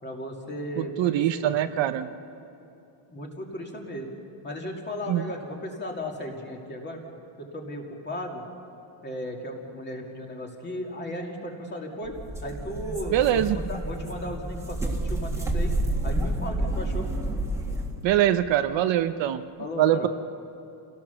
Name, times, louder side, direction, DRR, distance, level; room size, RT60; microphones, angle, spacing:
voice 1, 0.0-1.6 3.1-4.1 4.4-7.0 7.4-8.4 9.0-12.2 12.4-15.7 16.0-17.1 19.6-20.1, left 1 dB, 20° left, 0 dB, 2.4 m, -36 dB
voice 2, 0.8-2.1 5.1-5.3 13.1-13.6 18.0-19.4 19.8-20.1, right 12 dB, 60° right, 9 dB, 0.8 m, -23 dB
sound 1, 12.0-18.0, right 1 dB, 5° right, 1.8 m, -29 dB
28.0 x 17.0 x 7.0 m, 2.8 s
cardioid pair, 175°, 49 cm